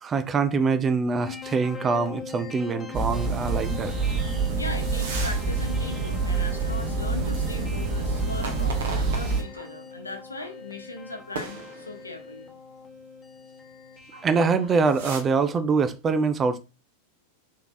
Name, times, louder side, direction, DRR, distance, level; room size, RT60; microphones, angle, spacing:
voice 1, 0.0-3.9 14.2-16.6, right 4 dB, 20° right, 0.5 m, -24 dB
sound 1, 1.2-14.8, left 5 dB, 20° left, 0.9 m, -42 dB
sound 2, 2.9-9.4, right 4 dB, 45° right, 1.2 m, -27 dB
voice 2, 4.5-12.5, left 2 dB, 80° left, 0.9 m, -39 dB
sound 3, 4.9-5.5 5.9-6.0 8.3-9.7 10.4-10.5 11.3-12.2 14.0-14.3 14.6-15.2, right 3 dB, 60° right, 0.9 m, -37 dB
3.7 x 3.4 x 2.6 m
figure-of-eight pair, 90°, 0 cm